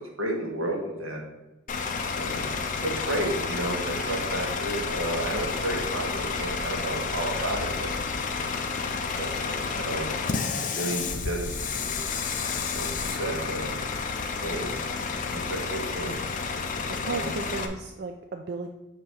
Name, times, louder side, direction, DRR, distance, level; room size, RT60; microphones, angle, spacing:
voice 1, 0.2-1.2 2.2-2.5 2.8-7.9 9.2-10.1 10.7-12.0 12.7-13.7 14.4-14.7 15.5-16.2 17.0-17.3, right 1 dB, 85° right, 0 dB, 1.4 m, -32 dB
Bus / Idling, 1.7-17.7, left 5 dB, 40° left, 0.5 m, -30 dB
voice 2, 16.9-18.7, right 3 dB, 50° right, 5 dB, 0.3 m, -35 dB
7.2 x 3.0 x 4.8 m, 1.0 s
head